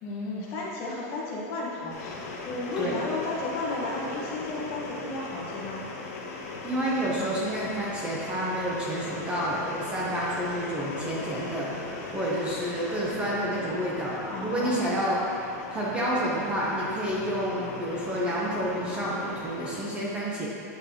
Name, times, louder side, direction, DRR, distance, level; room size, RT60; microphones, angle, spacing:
voice 1, 0.0-5.9 14.3-15.0, left 2 dB, 35° left, -4 dB, 1.3 m, -33 dB
sound 1, 1.9-19.8, left 3 dB, 65° left, 0.9 m, -39 dB
voice 2, 6.6-15.2 15.7-20.5, right 1 dB, 10° right, -6 dB, 0.7 m, -29 dB
8.7 x 5.3 x 2.8 m, 2.9 s
supercardioid pair, 160°, 9 cm